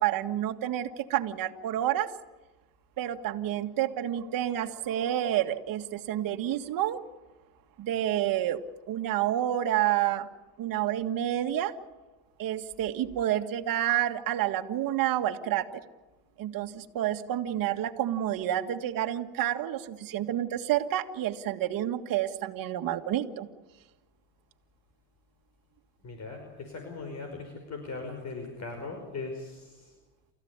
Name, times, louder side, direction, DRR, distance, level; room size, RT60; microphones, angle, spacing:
voice 1, 0.0-2.1 3.0-7.0 7.8-10.3 10.6-11.8 12.4-15.7 16.4-23.5, right 12 dB, 55° right, 6 dB, 1.9 m, -29 dB
voice 2, 26.0-30.0, left 3 dB, 40° left, 4 dB, 5.4 m, -39 dB
29.0 x 15.0 x 9.7 m, 1.1 s
supercardioid pair, 100°, 40 cm